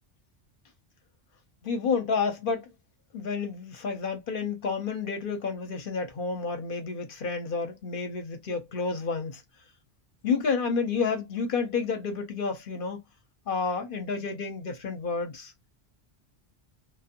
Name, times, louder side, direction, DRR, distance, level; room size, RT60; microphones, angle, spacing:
voice 1, 1.6-2.7 3.1-9.4 10.2-13.0 13.5-15.5, left 5 dB, 55° left, 0.8 m, -30 dB
2.5 x 2.2 x 2.8 m
omnidirectional pair, 1.2 m